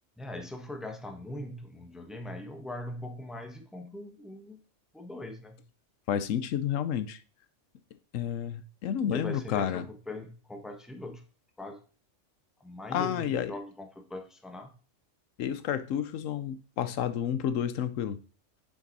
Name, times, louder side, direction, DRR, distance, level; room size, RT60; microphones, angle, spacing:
voice 1, 0.2-4.6 4.9-5.6 9.1-11.2 11.6-11.8 12.6-14.7, left 1 dB, ahead, 0.9 m, -41 dB
voice 2, 6.1-7.2 8.1-9.8 12.9-13.5 15.4-18.2, left 9 dB, 85° left, 1.1 m, -30 dB
7.8 x 6.0 x 4.1 m
omnidirectional pair, 1.3 m